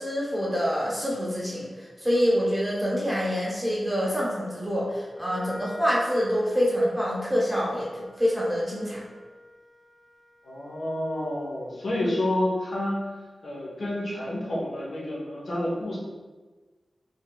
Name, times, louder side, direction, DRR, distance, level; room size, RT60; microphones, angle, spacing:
voice 1, 0.0-9.0, equal, 5° right, -6 dB, 0.9 m, -26 dB
Wind instrument woodwind instrument, 5.1-11.8, left 1 dB, 20° left, 0.4 m, -46 dB
voice 2, 10.4-13.0 13.4-16.0, left 1 dB, 65° left, -5 dB, 1.1 m, -29 dB
4.4 x 3.4 x 2.3 m, 1.3 s
wide cardioid pair, 135°, 0 cm